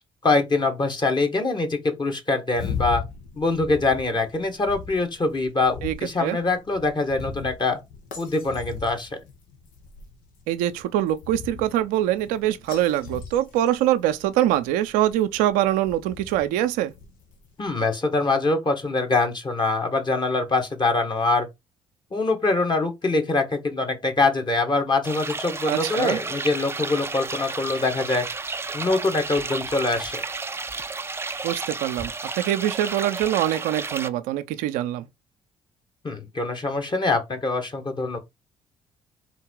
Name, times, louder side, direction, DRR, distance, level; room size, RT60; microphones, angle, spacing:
voice 1, 0.2-3.0 3.4-7.8 8.2-9.1 17.6-21.5 22.1-28.2 28.7-30.2 36.0-38.2, left 3 dB, 35° left, 1.6 m, -24 dB
sound 1, 2.5-17.7, left 6 dB, 75° left, 1.2 m, -39 dB
voice 2, 5.8-6.4 10.5-16.9 25.6-26.2 31.4-35.1, right 12 dB, 80° right, 0.5 m, -24 dB
sound 2, 25.0-34.1, right 3 dB, 15° right, 0.5 m, -32 dB
3.9 x 2.8 x 4.6 m
hypercardioid pair, 55°, 14 cm